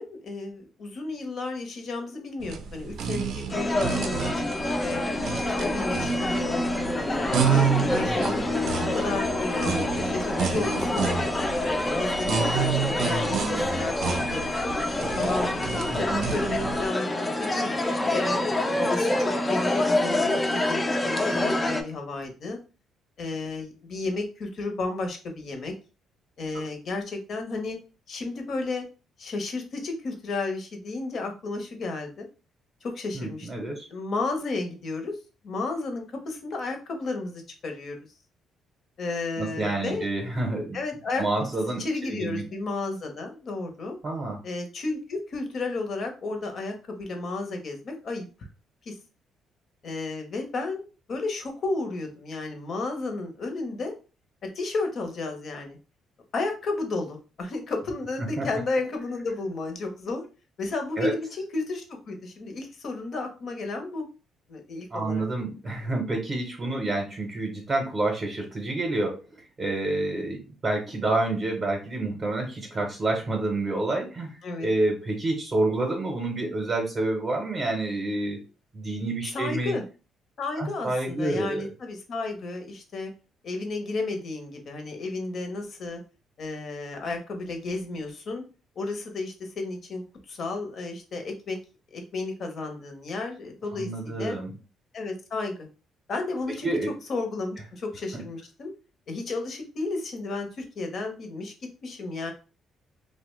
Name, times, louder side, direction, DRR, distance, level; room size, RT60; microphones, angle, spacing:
voice 1, 0.0-4.3 4.8-5.0 5.6-8.4 8.9-12.7 13.0-14.5 15.2-18.4 18.8-22.6 23.2-25.7 26.4-27.8 28.1-28.8 29.2-32.3 32.8-35.2 35.4-38.0 39.0-40.1 40.7-44.0 44.4-48.2 48.8-49.0 49.8-53.9 54.5-55.8 56.3-60.2 60.6-64.1 64.5-65.2 74.4-74.7 79.3-79.8 80.4-83.1 83.4-86.0 86.4-88.4 88.8-91.6 91.9-94.4 94.9-95.7 96.1-96.7 97.1-98.7 99.1-101.5 101.8-102.3, left 3 dB, 50° left, 4 dB, 0.7 m, -33 dB
sound 1, 2.4-16.9, right 7 dB, 65° right, 0.4 m, -30 dB
sound 2, 3.5-21.8, left 1 dB, 15° left, 0.4 m, -27 dB
voice 2, 15.9-16.3 33.1-33.9 39.4-40.8 41.2-42.4 44.0-44.4 58.4-58.5 61.0-61.1 64.9-78.4 78.7-79.8 80.6-81.7 93.7-94.5 96.6-96.9 98.1-98.2, right 2 dB, 30° right, 1 dB, 0.7 m, -28 dB
2.8 x 2.1 x 3.1 m, 0.33 s
cardioid pair, 125°, 0 cm